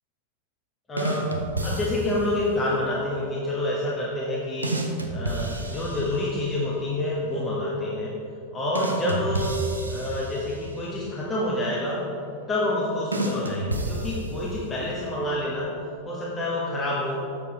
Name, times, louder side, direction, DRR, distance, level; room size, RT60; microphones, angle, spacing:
voice 1, 0.9-1.3 1.6-4.7 5.1-8.1 8.5-9.5 9.9-12.0 12.5-15.7 16.1-17.2, left 1 dB, 20° left, -5 dB, 1.2 m, -28 dB
sound 1, 1.0-2.4 4.6-6.6 8.7-10.9 13.1-14.7, right 2 dB, 80° right, 0.7 m, -30 dB
7.2 x 6.8 x 3.9 m, 2.6 s
figure-of-eight pair, 90°, 0 cm